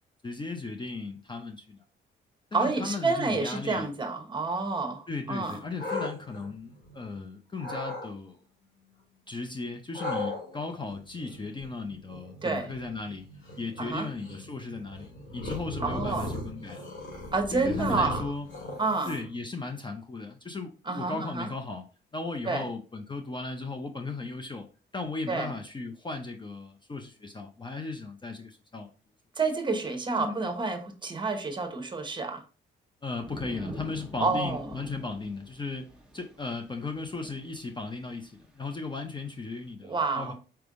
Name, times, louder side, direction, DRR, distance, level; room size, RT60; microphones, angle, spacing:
voice 1, 0.2-1.8 2.5-3.9 5.1-8.4 9.3-13.3 13.6-16.9 17.5-18.5 19.1-21.8 22.1-24.7 24.9-28.9 30.2-30.3 33.0-40.3, left 3 dB, 25° left, 4 dB, 0.5 m, -36 dB
voice 2, 2.5-5.6 12.4-12.7 13.8-14.1 15.8-16.3 17.3-18.3 18.8-19.2 20.9-21.5 22.5-22.6 25.3-25.5 29.4-32.4 34.2-34.7 39.8-40.3, right 3 dB, 25° right, 6 dB, 0.9 m, -29 dB
sound 1, 5.4-7.2 7.6-8.1 9.9-19.4, left 1 dB, 65° left, 2.0 m, -38 dB
sound 2, 33.2-38.9 39.4-39.7, right 1 dB, 5° right, 1.1 m, -45 dB
4.4 x 3.4 x 2.5 m, 0.35 s
cardioid pair, 90°, 20 cm